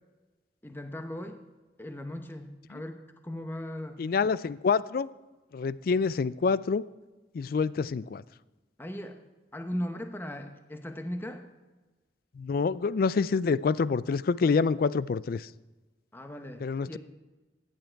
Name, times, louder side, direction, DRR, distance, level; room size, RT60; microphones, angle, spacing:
voice 1, 0.6-1.4 1.8-4.1 8.8-9.2 9.5-11.4 16.1-17.0, equal, 10° left, 6 dB, 0.9 m, -38 dB
voice 2, 4.0-5.1 5.5-6.8 7.3-8.2 12.4-15.5 16.6-17.0, left 5 dB, 55° left, 19 dB, 0.3 m, -27 dB
15.0 x 9.2 x 4.6 m, 1.2 s
head